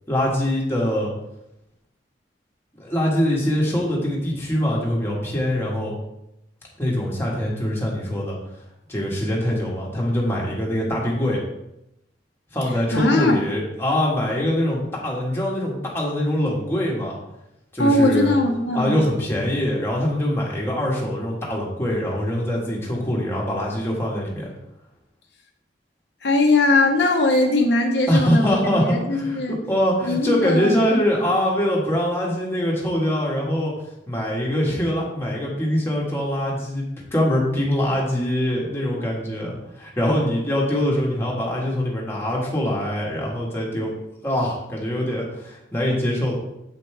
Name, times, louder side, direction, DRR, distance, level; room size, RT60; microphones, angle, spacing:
voice 1, 0.1-1.1 2.8-6.0 6.8-8.4 8.9-11.4 12.5-17.2 17.7-18.3 18.7-24.5 28.1-33.7 34.1-43.9 44.2-46.3, equal, 15° left, -4 dB, 1.6 m, -23 dB
voice 2, 12.9-13.4 17.8-19.0 26.2-29.6 30.0-30.8, left 2 dB, 70° left, 1 dB, 0.9 m, -20 dB
7.6 x 5.4 x 3.4 m, 0.87 s
head